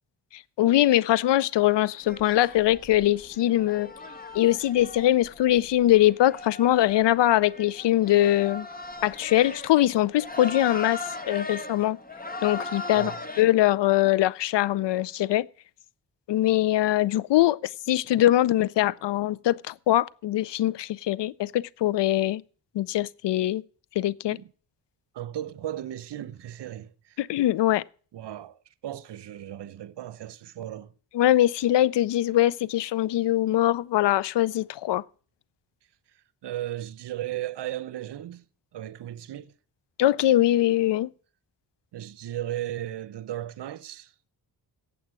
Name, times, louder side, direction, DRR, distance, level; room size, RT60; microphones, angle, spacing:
voice 1, 0.3-3.9 4.3-8.7 9.0-12.0 12.4-13.1 13.4-15.5 16.3-22.4 22.7-23.6 24.0-24.4 27.2-27.8 31.1-35.0 40.0-41.1, left 14 dB, 80° left, 0.5 m, -22 dB
sound 1, 2.0-13.4, left 2 dB, 20° left, 1.6 m, -39 dB
voice 2, 25.1-27.2 28.1-28.6 28.8-30.9 36.4-38.4 38.7-39.5 41.9-44.1, right 12 dB, 70° right, 0.8 m, -36 dB
8.5 x 8.0 x 8.7 m
cardioid pair, 70°, 42 cm